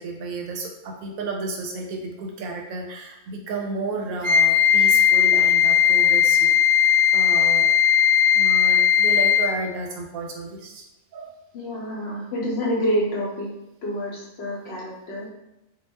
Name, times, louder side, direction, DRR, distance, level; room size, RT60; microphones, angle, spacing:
voice 1, 0.0-6.5 7.1-7.7 8.3-10.8 11.1-11.3 14.7-14.8, right 3 dB, 90° right, 1 dB, 1.0 m, -32 dB
Wind instrument woodwind instrument, 4.2-9.6, left 9 dB, 65° right, 0.8 m, -17 dB
voice 2, 11.5-13.5 13.8-15.3, equal, 60° left, -4 dB, 0.7 m, -27 dB
2.3 x 2.1 x 3.2 m, 0.91 s
omnidirectional pair, 1.4 m